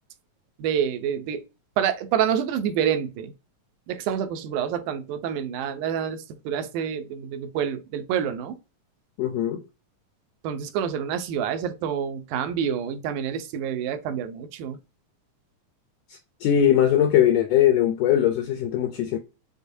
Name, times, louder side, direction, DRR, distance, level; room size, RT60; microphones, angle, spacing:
voice 1, 0.6-1.4 1.8-3.3 3.9-8.6 10.4-14.8, right 8 dB, 85° right, 2.1 m, -27 dB
voice 2, 9.2-9.6 16.1-19.2, left 10 dB, 85° left, 1.5 m, -21 dB
6.5 x 2.2 x 2.6 m
omnidirectional pair, 3.5 m